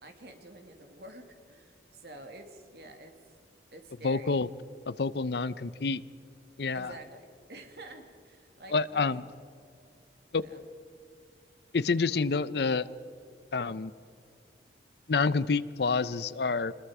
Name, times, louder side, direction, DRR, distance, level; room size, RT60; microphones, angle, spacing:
voice 1, 0.0-3.1 3.7-4.4 6.7-9.2 10.4-10.7 12.1-12.2, right 1 dB, 65° right, 5 dB, 2.3 m, -49 dB
voice 2, 4.0-4.5 4.9-6.0 6.6-6.9 8.7-9.2 10.3-10.4 11.7-12.9 13.5-13.9 15.1-16.7, left 4 dB, 70° left, 16 dB, 0.6 m, -28 dB
25.0 x 21.0 x 4.9 m, 2.5 s
head